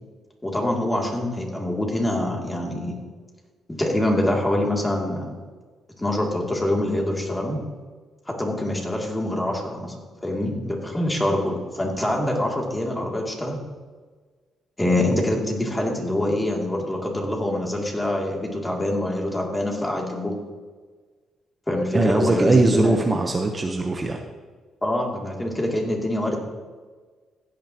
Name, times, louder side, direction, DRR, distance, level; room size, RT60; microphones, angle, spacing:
voice 1, 0.4-3.0 3.8-5.2 6.0-7.6 8.3-9.9 10.2-13.6 14.8-20.3 21.7-23.0 24.8-26.4, left 1 dB, 10° left, -1 dB, 2.6 m, -25 dB
voice 2, 21.9-24.2, right 2 dB, 25° right, 3 dB, 0.9 m, -21 dB
16.0 x 9.2 x 3.0 m, 1.4 s
cardioid pair, 90°, 0 cm